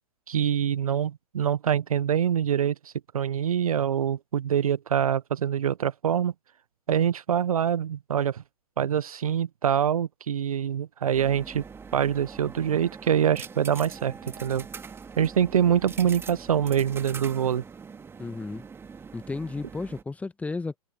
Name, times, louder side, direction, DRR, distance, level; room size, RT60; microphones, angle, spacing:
voice 1, 0.3-6.3 6.9-8.4 8.8-11.6 11.9-14.6 15.2-17.6, right 9 dB, 70° right, 0.7 m, -25 dB
sound 1, 11.1-20.0, right 5 dB, 10° right, 2.1 m, -43 dB
voice 2, 18.2-18.6 19.1-20.8, left 3 dB, 5° left, 1.3 m, -33 dB
figure-of-eight pair, 110°, 19 cm